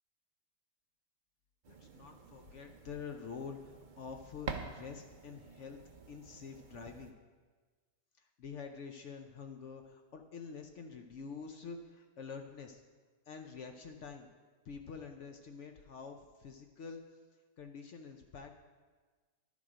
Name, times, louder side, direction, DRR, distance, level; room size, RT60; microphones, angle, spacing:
sound 1, 1.6-7.1, right 5 dB, 75° right, 0.4 m, -48 dB
voice 1, 1.7-5.8 6.1-7.2 8.2-12.8 13.3-14.3 14.6-17.0 17.6-18.5, left 5 dB, 65° left, 5 dB, 0.7 m, -47 dB
11.0 x 7.2 x 4.9 m, 1.4 s
omnidirectional pair, 1.9 m